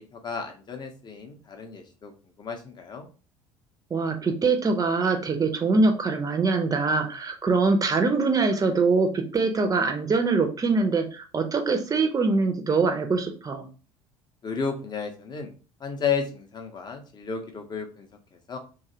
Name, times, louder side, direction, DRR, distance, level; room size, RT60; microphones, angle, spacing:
voice 1, 0.0-2.1 2.4-3.1 14.4-15.5 15.8-18.6, left 6 dB, 25° left, 5 dB, 0.7 m, -33 dB
voice 2, 3.9-13.7, right 4 dB, 20° right, 5 dB, 0.6 m, -23 dB
2.9 x 2.4 x 2.8 m, 0.36 s
figure-of-eight pair, 60°, 16 cm